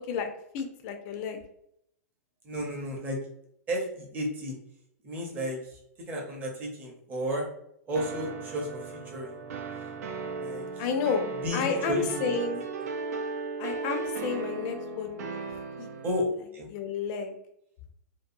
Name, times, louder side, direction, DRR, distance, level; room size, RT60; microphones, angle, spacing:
voice 1, 0.1-1.4 10.8-11.3 11.5-12.6 13.6-15.4 15.8-15.9 16.7-17.3, left 5 dB, 35° left, 5 dB, 0.4 m, -31 dB
voice 2, 2.4-3.2 3.7-4.5 5.0-5.8 6.1-7.5 7.9-9.4 10.4-10.8 11.4-12.4 16.0-16.7, equal, 20° right, -1 dB, 0.7 m, -33 dB
sound 1, 7.9-16.2, right 4 dB, 65° right, 0.4 m, -36 dB
2.6 x 2.3 x 2.5 m, 0.74 s
hypercardioid pair, 145°, 9 cm